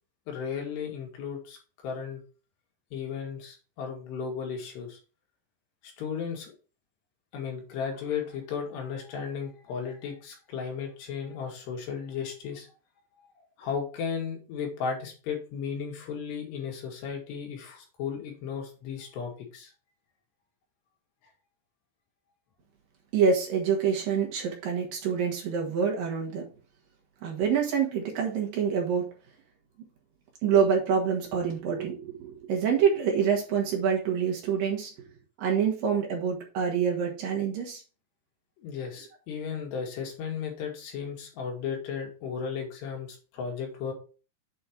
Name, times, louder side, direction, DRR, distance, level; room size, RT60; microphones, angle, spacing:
voice 1, 0.3-1.6 1.8-2.2 2.9-5.0 5.8-6.5 7.3-12.7 13.2-13.3 13.6-19.7 38.6-43.9, left 6 dB, 75° left, 0 dB, 4.1 m, -35 dB
voice 2, 23.1-26.5 27.2-29.1 30.4-34.9 35.4-37.8, right 7 dB, 65° right, 0 dB, 2.8 m, -26 dB
8.3 x 4.3 x 4.6 m, 0.35 s
omnidirectional pair, 4.9 m